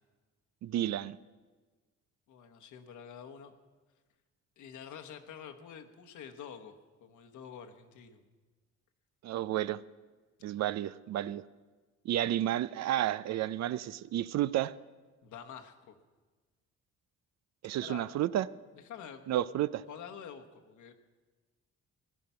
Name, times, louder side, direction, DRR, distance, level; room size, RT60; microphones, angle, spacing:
voice 1, 0.6-1.2 9.2-9.8 10.4-11.4 12.0-14.7 17.6-18.5 19.3-19.8, right 12 dB, 60° right, 18 dB, 0.5 m, -31 dB
voice 2, 2.3-3.5 4.6-8.3 15.2-16.0 17.8-18.0 18.7-20.9, left 8 dB, 75° left, 5 dB, 1.2 m, -48 dB
16.0 x 10.5 x 5.6 m, 1.3 s
cardioid pair, 90°, 30 cm